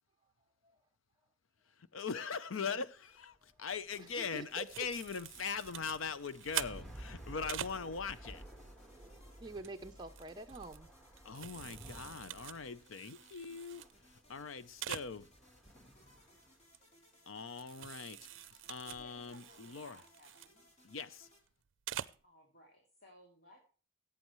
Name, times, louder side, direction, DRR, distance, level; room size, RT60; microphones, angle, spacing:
voice 1, 1.9-8.4 11.2-13.8 14.3-15.3 17.3-20.0 20.8-21.3, left 5 dB, 80° left, 0.7 m, -41 dB
sound 1, 3.0-16.6, right 1 dB, 5° left, 1.6 m, -55 dB
sound 2, 3.9-21.4, left 1 dB, 35° left, 3.0 m, -65 dB
voice 2, 4.0-4.7 9.4-10.9, right 2 dB, 20° right, 0.6 m, -47 dB
sound 3, 4.7-7.8 9.4-9.7 10.1-13.9 14.2-14.3 14.5-14.6 14.8-15.1 16.7-16.8 17.6-20.5 21.7-22.2, right 11 dB, 65° right, 0.5 m, -45 dB
voice 3, 19.0-20.7 22.2-23.6, left 1 dB, 55° left, 2.7 m, -61 dB
17.0 x 8.5 x 3.1 m
head